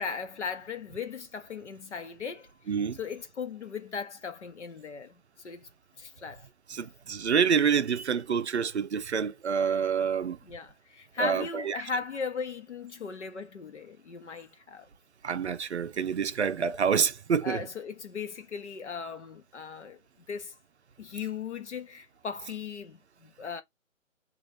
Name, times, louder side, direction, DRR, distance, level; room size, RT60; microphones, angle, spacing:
voice 1, 0.0-2.5 2.9-5.7 6.0-6.4 10.5-14.9 17.4-20.0 20.3-20.5 21.0-23.6, left 5 dB, 60° left, 1.0 m, -37 dB
voice 2, 2.7-3.0 6.7-10.4 11.2-11.8 15.2-17.7, right 7 dB, 55° right, 0.5 m, -27 dB
3.8 x 2.5 x 3.2 m
figure-of-eight pair, 155°, 40 cm